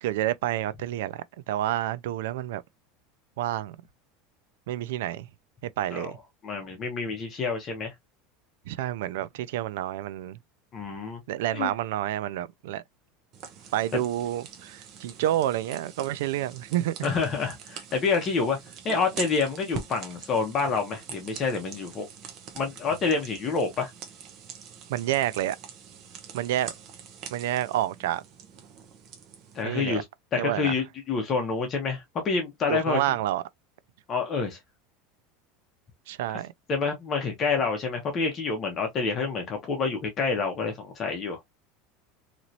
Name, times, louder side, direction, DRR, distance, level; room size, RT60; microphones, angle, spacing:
voice 1, 0.0-2.6 3.4-3.8 4.7-5.3 5.8-6.2 8.7-10.4 11.3-12.8 13.7-17.1 24.9-25.6 26.3-26.7 27.3-28.2 29.6-30.0 30.3-30.7 32.7-33.4 36.1-36.5, right 13 dB, 80° right, 0.3 m, -29 dB
voice 2, 6.4-7.9 10.7-11.2 11.5-11.7 13.9-14.0 17.0-18.6 18.8-22.1 22.5-23.9 29.5-30.0 30.3-33.0 34.1-34.6 36.7-41.4, left 4 dB, 25° left, 0.9 m, -28 dB
sound 1, 13.3-29.6, right 7 dB, 35° right, 0.8 m, -44 dB
3.0 x 2.9 x 2.6 m
supercardioid pair, 170°, 0 cm